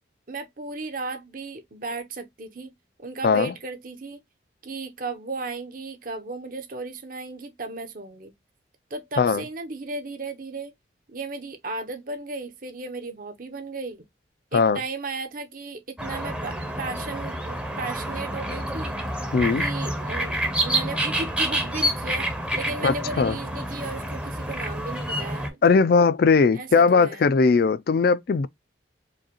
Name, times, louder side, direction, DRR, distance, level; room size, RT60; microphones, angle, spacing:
voice 1, 0.3-2.7 3.0-4.2 4.6-8.3 8.9-10.7 11.1-14.0 14.5-19.0 19.6-20.4 20.6-25.9 26.5-27.3, right 3 dB, 50° right, 0.9 m, -35 dB
sound 1, 16.0-25.5, right 1 dB, 5° right, 0.7 m, -28 dB
voice 2, 19.3-19.6 22.8-23.3 25.6-28.5, left 4 dB, 55° left, 0.3 m, -19 dB
4.8 x 2.3 x 2.9 m
head